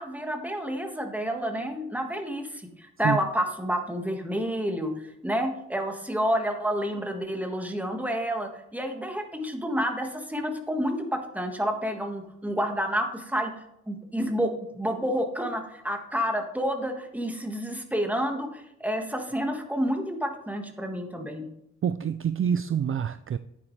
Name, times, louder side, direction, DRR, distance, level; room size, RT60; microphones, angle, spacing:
voice 1, 0.0-4.9 5.2-13.5 13.9-21.4, equal, 5° right, 4 dB, 1.6 m, -29 dB
voice 2, 21.8-23.4, right 8 dB, 45° right, 12 dB, 0.4 m, -26 dB
9.9 x 9.5 x 3.2 m, 0.81 s
cardioid pair, 85°, 31 cm